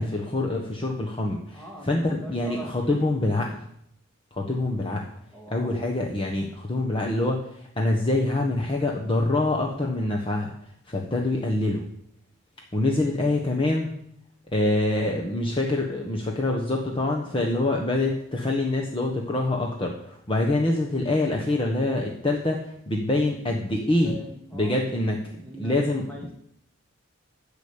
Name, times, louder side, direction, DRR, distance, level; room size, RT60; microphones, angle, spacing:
voice 1, 0.0-3.6 4.3-5.0 5.5-10.5 10.9-11.8 12.7-14.0 14.5-24.1 24.5-26.0, left 2 dB, 25° left, 0 dB, 1.3 m, -25 dB
voice 2, 1.5-3.1 5.3-5.8 23.8-24.8 25.4-26.3, right 1 dB, 5° left, -1 dB, 2.4 m, -42 dB
13.0 x 5.2 x 8.8 m, 0.72 s
head